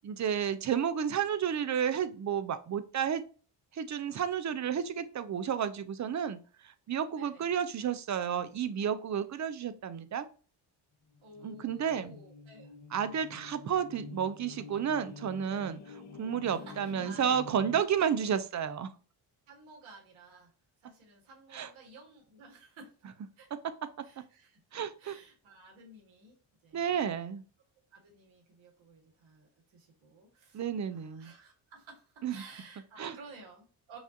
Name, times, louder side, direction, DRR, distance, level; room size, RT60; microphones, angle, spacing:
voice 1, 0.0-3.2 3.7-6.4 6.6-10.3 11.4-12.2 12.9-18.9 21.5-21.7 23.5-23.6 24.7-25.2 26.7-27.4 30.5-31.3 32.2-32.4 33.0-33.2, right 8 dB, 35° right, 13 dB, 0.5 m, -31 dB
voice 2, 7.2-7.5 11.2-12.7 16.5-17.2 18.0-18.3 19.5-20.5 20.8-22.9 23.4-23.5 24.0-26.3 26.6-27.3 27.9-34.0, right 3 dB, 70° right, 1 dB, 1.7 m, -54 dB
sound 1, 11.1-17.8, left 5 dB, 35° left, 0.7 m, -48 dB
6.0 x 2.4 x 2.7 m, 0.39 s
cardioid pair, 80°, 49 cm